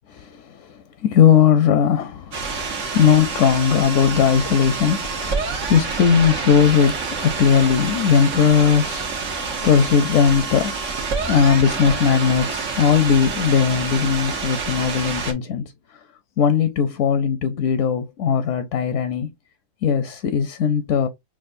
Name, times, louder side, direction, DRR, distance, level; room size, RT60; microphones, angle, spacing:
voice 1, 0.1-0.7 1.0-2.3 2.9-10.8 11.3-15.6 16.4-19.3 19.8-21.1, left 7 dB, 85° left, 0.9 m, -18 dB
sound 1, 2.3-15.3, right 4 dB, 90° right, 1.3 m, -27 dB
5.9 x 2.4 x 2.5 m
omnidirectional pair, 1.3 m